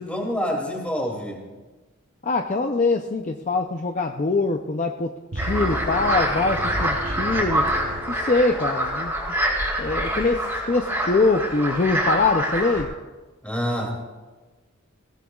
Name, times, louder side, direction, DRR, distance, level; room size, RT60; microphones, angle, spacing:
voice 1, 0.0-1.5 13.4-14.1, equal, 5° left, 0 dB, 2.6 m, -27 dB
voice 2, 2.2-7.7 8.1-9.1 9.8-12.9, left 3 dB, 35° left, 4 dB, 0.5 m, -23 dB
sound 1, 5.3-8.8, right 1 dB, 45° right, 0.8 m, -33 dB
sound 2, 5.4-12.8, right 1 dB, 10° right, 3.7 m, -26 dB
19.5 x 17.5 x 2.4 m, 1.2 s
head